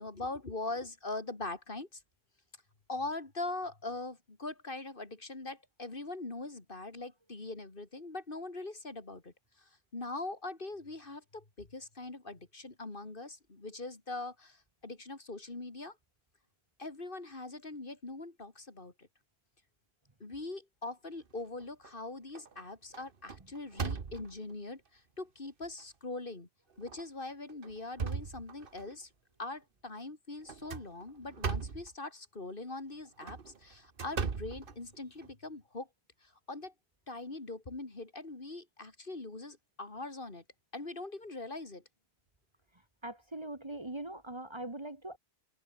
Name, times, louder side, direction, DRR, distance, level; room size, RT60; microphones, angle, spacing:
voice 1, 0.0-2.0 2.9-16.0 16.8-19.1 20.2-26.5 26.8-29.1 29.4-35.9 36.2-36.7 37.1-40.4 40.7-41.8, left 2 dB, 60° left, 3.0 m, -42 dB
sound 1, 21.3-21.9 22.3-22.6 22.9-24.5 25.2-25.3 25.8-25.9 26.8-27.0 27.5-28.9 30.5-31.9 33.0-35.3, right 5 dB, 60° right, 1.5 m, -38 dB
voice 2, 43.0-45.2, right 1 dB, 25° right, 1.7 m, -41 dB
omnidirectional pair, 1.0 m